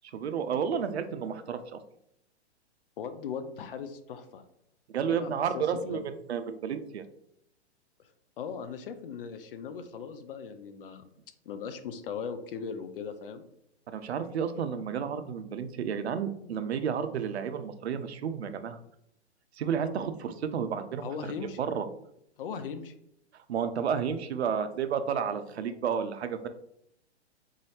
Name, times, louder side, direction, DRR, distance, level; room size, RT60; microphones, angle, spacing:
voice 1, 0.1-1.8 4.9-7.0 13.9-18.8 19.6-21.3 21.6-21.9 23.5-26.5, right 7 dB, 70° right, 10 dB, 0.5 m, -31 dB
voice 2, 3.0-4.4 5.0-6.1 8.4-11.0 11.5-13.4 21.0-21.6 22.4-22.9, left 6 dB, 55° left, 9 dB, 0.5 m, -38 dB
3.8 x 2.7 x 3.1 m, 0.75 s
figure-of-eight pair, 115°, 34 cm